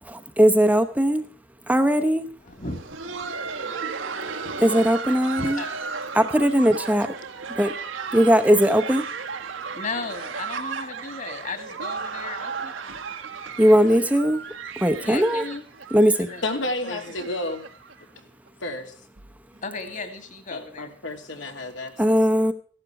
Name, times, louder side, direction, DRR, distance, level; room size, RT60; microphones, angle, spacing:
voice 1, 0.0-1.3 1.7-2.3 4.6-5.6 6.1-7.2 7.5-7.7 8.1-9.1 13.6-14.4 14.8-15.4 15.9-16.3 22.0-22.5, equal, 10° right, 9 dB, 0.7 m, -19 dB
voice 2, 2.5-3.2 4.3-4.6 5.4-5.7 9.7-12.7 15.0-15.6 16.3-16.4 16.8-17.2 19.6-20.9, left 3 dB, 40° left, 8 dB, 2.4 m, -35 dB
Laughter, 2.5-18.2 18.5-18.6 19.2-19.3 19.8-20.0 21.1-21.2, right 5 dB, 90° right, 1.6 m, -35 dB
voice 3, 16.4-17.6 18.6-18.9 20.5-22.2, left 2 dB, 75° left, 4 dB, 2.7 m, -31 dB
15.5 x 12.0 x 4.8 m, 0.44 s
head